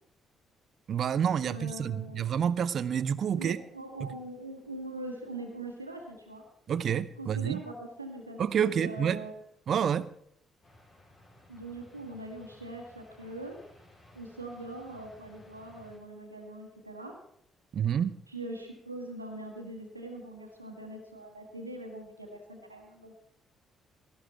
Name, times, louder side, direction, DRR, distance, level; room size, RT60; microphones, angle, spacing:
voice 1, 0.9-3.6 4.0-4.1 6.7-7.6 8.4-9.2 9.7-10.1 17.7-18.2, right 8 dB, 50° right, 17 dB, 0.6 m, -28 dB
voice 2, 1.4-2.3 3.4-6.4 7.2-9.3 11.5-13.6 14.1-17.1 18.3-23.2, right 2 dB, 90° right, 2 dB, 1.6 m, -42 dB
sound 1, 10.6-16.0, left 1 dB, 50° left, 4.4 m, -57 dB
18.0 x 12.0 x 4.4 m, 0.70 s
figure-of-eight pair, 45°, 0 cm